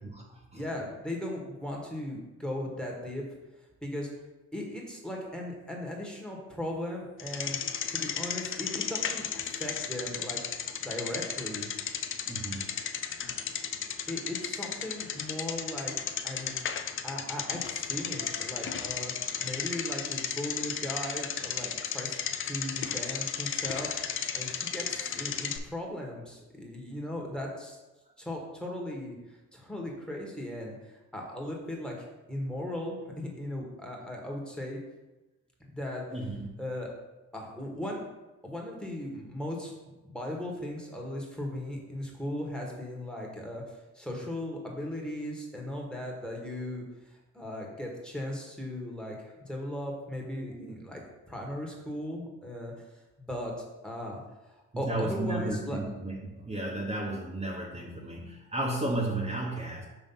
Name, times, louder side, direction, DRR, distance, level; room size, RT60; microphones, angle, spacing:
voice 1, 0.0-0.6 12.3-12.7 36.1-36.5 54.7-59.8, right 2 dB, 20° right, -4 dB, 1.1 m, -33 dB
voice 2, 0.5-3.2 3.8-4.1 4.5-7.6 7.9-10.4 10.8-11.7 14.1-16.6 17.0-19.1 19.4-22.1 22.4-27.8 28.2-34.8 35.6-36.2 36.6-36.9 37.3-38.0 38.4-39.7 40.0-43.6 43.9-51.0 51.3-53.0 53.3-53.5 53.8-54.2 54.8-55.8, left 1 dB, 5° left, -1 dB, 1.5 m, -37 dB
Bicycle, 7.2-25.6, left 7 dB, 45° left, 0.5 m, -34 dB
5.4 x 3.4 x 5.6 m, 1.1 s
cardioid pair, 90°, 30 cm